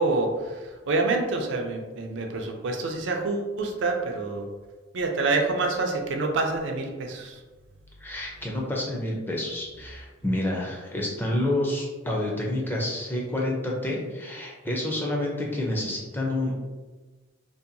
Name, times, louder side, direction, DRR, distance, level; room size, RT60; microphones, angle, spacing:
voice 1, 0.0-4.5 4.9-7.4, right 3 dB, 60° right, 3 dB, 0.4 m, -27 dB
voice 2, 8.0-16.5, left 1 dB, 10° left, -2 dB, 0.4 m, -29 dB
2.7 x 2.2 x 2.5 m, 1.3 s
head